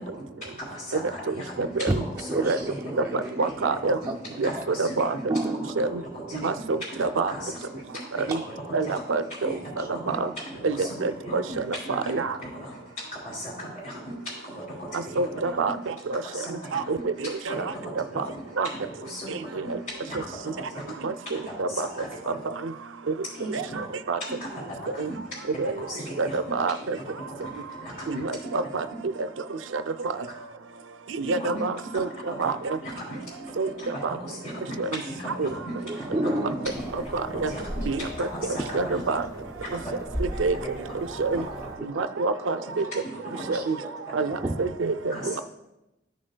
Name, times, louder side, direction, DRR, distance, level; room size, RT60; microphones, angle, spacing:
voice 1, 0.0-3.9 4.4-5.2 5.5-7.8 8.1-8.9 9.4-10.2 10.4-11.6 11.8-15.8 16.2-16.8 17.2-19.7 20.0-22.4 23.3-23.8 24.4-26.5 26.8-28.2 31.2-31.6 32.3-32.5 32.8-39.0 39.7-39.9 40.9-41.0 43.0-43.6 45.1-45.4, equal, 45° left, -9 dB, 2.9 m, -38 dB
voice 2, 1.9-4.6 5.3-5.8 6.4-6.5 7.8-8.5 9.0-9.1 9.8-9.9 10.1-10.2 10.8-10.9 35.9-36.8 37.8-37.9 41.3-41.9 42.6-42.8 43.5-44.5 45.2-45.3, right 1 dB, 20° right, -2 dB, 0.4 m, -32 dB
voice 3, 3.4-4.0 4.4-4.5 4.8-5.1 5.8-6.0 6.3-7.3 8.3-8.4 8.7-9.5 10.1-10.3 10.6-11.4 11.9-12.3 15.2-15.8 16.1-16.2 16.7-17.1 17.5-17.7 18.2-18.3 18.6-18.7 21.0-21.1 21.6-21.9 24.1-24.2 25.0-25.1 25.6-25.7 26.2-27.0 28.1-28.8 29.7-29.8 31.2-32.1 32.4-32.6 33.6-33.7 34.0-34.2 34.8-35.0 35.4-35.5 37.1-37.5 37.9-38.3 38.7-39.2 40.4-40.6 41.2-41.4 41.8-42.9 43.5-43.8 44.1-45.4, right 4 dB, 85° right, 10 dB, 0.5 m, -26 dB
sound 1, 36.6-41.8, equal, 20° left, 1.4 m, -37 dB
13.5 x 6.3 x 2.2 m, 0.93 s
head